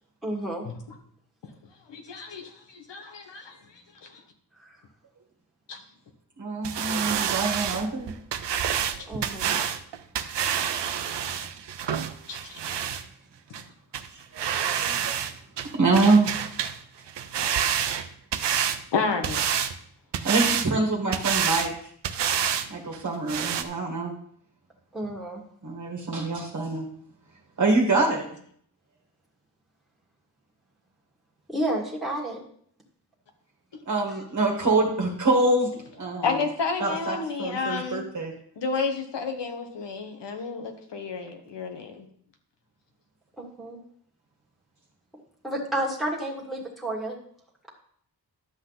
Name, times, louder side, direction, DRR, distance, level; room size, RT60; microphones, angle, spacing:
voice 1, 0.2-0.7 4.6-4.7 9.1-9.5 24.9-25.4 31.5-32.4 43.4-43.8 45.4-47.2, right 1 dB, ahead, 1.8 m, -30 dB
voice 2, 1.9-4.2 5.7-5.8 10.7-10.9 11.3-11.5 12.3-12.6 17.6-18.0 18.9-19.4 36.2-38.1 38.6-42.1, left 4 dB, 85° left, 1.6 m, -31 dB
voice 3, 6.4-8.1 14.3-15.2 15.7-16.5 17.7-17.8 20.2-21.7 22.7-24.1 25.6-26.8 27.6-28.2 33.9-36.3 36.8-38.3, right 3 dB, 45° right, 1.6 m, -25 dB
sound 1, 6.6-13.0 13.5-13.6 13.9-14.1 14.4-15.3 15.6-16.8 17.1-18.8 19.2-19.7 20.1-20.7 21.1-21.7 22.0-22.7 22.9-23.0 23.3-23.6, right 8 dB, 85° right, 0.8 m, -28 dB
11.5 x 7.7 x 4.0 m
wide cardioid pair, 160°, 41 cm